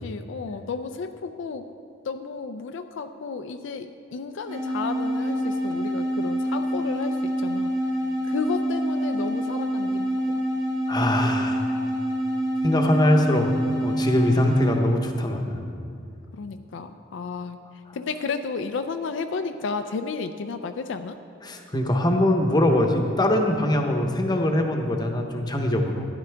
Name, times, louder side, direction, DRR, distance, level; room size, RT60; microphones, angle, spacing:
voice 1, 0.0-1.7 2.0-7.7 8.2-10.4 16.3-21.2, left 4 dB, 70° left, 8 dB, 0.4 m, -32 dB
sound 1, 4.5-14.9, equal, 75° right, 1.9 m, -26 dB
voice 2, 10.9-11.7 12.6-13.5 13.8-15.6 21.4-26.1, left 1 dB, 20° left, 3 dB, 0.8 m, -22 dB
12.5 x 10.5 x 3.4 m, 2.4 s
head